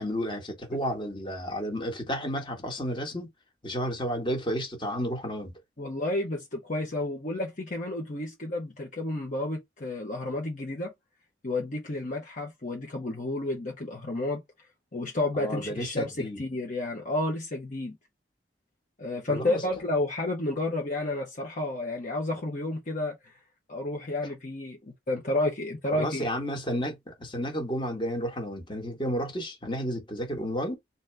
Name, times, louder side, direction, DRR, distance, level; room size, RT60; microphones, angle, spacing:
voice 1, 0.0-3.3 3.6-5.5 15.3-16.4 19.3-19.6 25.9-30.8, equal, 25° left, 1.5 m, -32 dB
voice 2, 5.8-10.9 11.4-14.4 14.9-18.0 19.0-23.2 23.7-24.8 25.1-26.3, left 2 dB, 45° left, 1.1 m, -31 dB
4.1 x 2.9 x 3.4 m
head